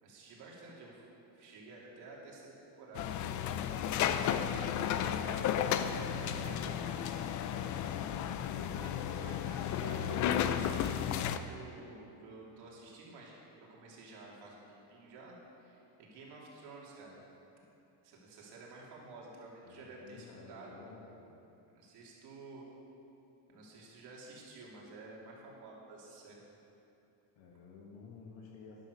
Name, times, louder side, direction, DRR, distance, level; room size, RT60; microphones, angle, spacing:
voice 1, 0.0-1.0 1.3-3.2 4.1-7.8 8.5-17.2 18.0-20.8 21.7-22.7 23.5-26.4, right 3 dB, 60° right, -4 dB, 3.3 m, -51 dB
sound 1, 2.9-11.4, left 9 dB, 45° left, 0.5 m, -33 dB
voice 2, 19.6-21.2 27.4-28.9, left 4 dB, 85° left, -1 dB, 2.0 m, -53 dB
12.0 x 11.0 x 6.6 m, 2.8 s
cardioid pair, 180°, 44 cm